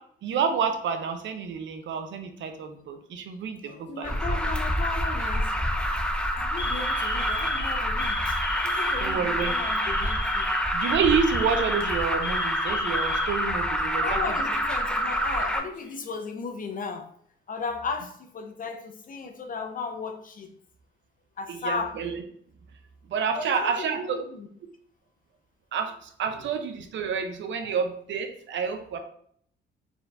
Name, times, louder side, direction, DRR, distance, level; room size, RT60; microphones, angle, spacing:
voice 1, 0.2-4.4 9.0-9.6 10.7-14.2 21.5-22.2 23.1-24.2 25.7-29.0, right 6 dB, 70° right, 7 dB, 0.7 m, -29 dB
Alarm, 3.7-4.2 5.0-5.3 5.8-6.0 6.6-14.1 14.4-14.5 15.4-16.1, left 5 dB, 65° left, 1.1 m, -38 dB
voice 2, 3.9-5.5 6.4-8.4 8.6-10.5 14.0-17.0 17.5-20.5 21.4-21.9 23.3-24.5 27.6-27.7, left 4 dB, 45° left, 5 dB, 0.8 m, -35 dB
Alarm 2, 4.0-15.6, equal, 5° left, 0.6 m, -27 dB
4.4 x 4.4 x 2.6 m, 0.63 s
cardioid pair, 90°, 20 cm